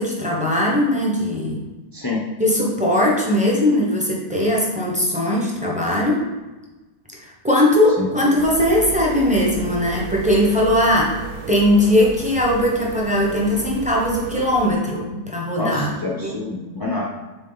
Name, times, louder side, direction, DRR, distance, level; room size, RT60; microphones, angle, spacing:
voice 1, 0.0-1.6 2.4-6.3 7.4-11.2 11.5-15.9 16.2-16.3, left 1 dB, 5° right, -3 dB, 0.9 m, -19 dB
voice 2, 1.9-2.2 8.0-8.1 15.6-17.0, left 2 dB, 25° left, -5 dB, 0.5 m, -26 dB
sound 1, 8.4-14.7, right 6 dB, 75° right, 1.1 m, -34 dB
6.2 x 4.3 x 4.0 m, 1.2 s
omnidirectional pair, 1.7 m